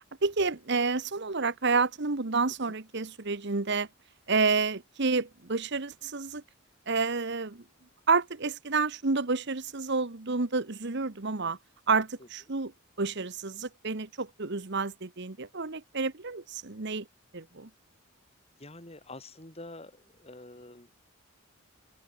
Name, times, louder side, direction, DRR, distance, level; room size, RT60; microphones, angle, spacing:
voice 1, 0.2-3.9 4.3-6.4 6.9-7.6 8.1-11.6 11.9-12.7 13.0-17.1 17.3-17.7, right 4 dB, 55° right, 1.2 m, -29 dB
voice 2, 18.6-20.9, left 2 dB, 30° left, 3.6 m, -47 dB
open air
head